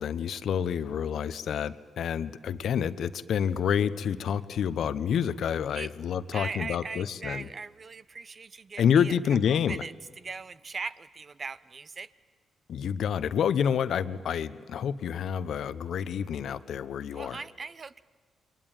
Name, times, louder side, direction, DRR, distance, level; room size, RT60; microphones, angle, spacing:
voice 1, 0.0-7.5 8.8-9.8 12.7-17.4, left 8 dB, 70° left, 13 dB, 0.9 m, -28 dB
voice 2, 6.3-9.2 9.5-12.1 17.1-18.0, right 4 dB, 45° right, 15 dB, 0.9 m, -39 dB
28.5 x 22.5 x 9.1 m, 1.5 s
supercardioid pair, 55°, 0 cm